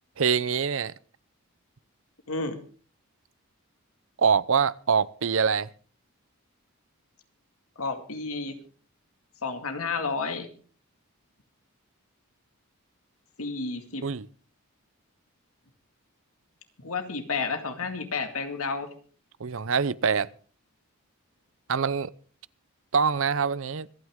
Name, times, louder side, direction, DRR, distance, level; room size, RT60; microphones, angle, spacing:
voice 1, 0.2-0.9 4.2-5.7 14.0-14.3 19.4-20.3 21.7-22.1 22.9-23.9, right 6 dB, 60° right, 0.6 m, -24 dB
voice 2, 2.3-2.6 7.8-8.6 9.4-10.5 13.4-14.1 16.8-18.9, left 4 dB, 75° left, 2.2 m, -31 dB
26.0 x 9.5 x 3.7 m
head